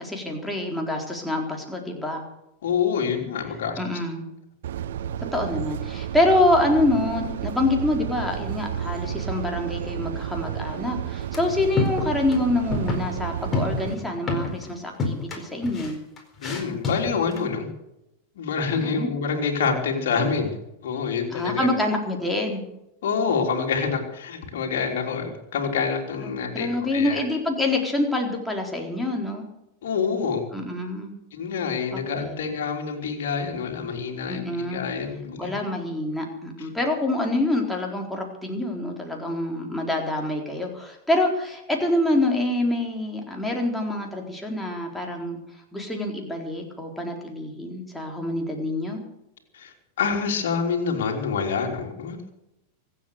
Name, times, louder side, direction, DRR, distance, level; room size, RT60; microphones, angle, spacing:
voice 1, 0.0-2.2 3.8-4.2 5.3-16.0 18.7-19.1 21.3-22.6 26.2-29.4 30.5-31.1 31.9-32.4 34.3-34.8 35.4-45.4 45.7-49.0, left 1 dB, 5° left, 0 dB, 4.1 m, -26 dB
voice 2, 2.6-3.8 16.4-17.7 18.3-20.6 20.8-21.7 23.0-27.2 29.8-30.4 31.3-35.5 49.5-52.3, left 6 dB, 55° left, 1 dB, 3.4 m, -27 dB
sound 1, 4.6-13.9, right 10 dB, 60° right, 0.6 m, -32 dB
sound 2, 11.3-11.5 11.8-12.4 12.7-13.1 13.5-14.7 15.0-17.4, left 3 dB, 20° left, 4.4 m, -28 dB
24.5 x 8.4 x 6.7 m, 0.86 s
figure-of-eight pair, 90°, 0 cm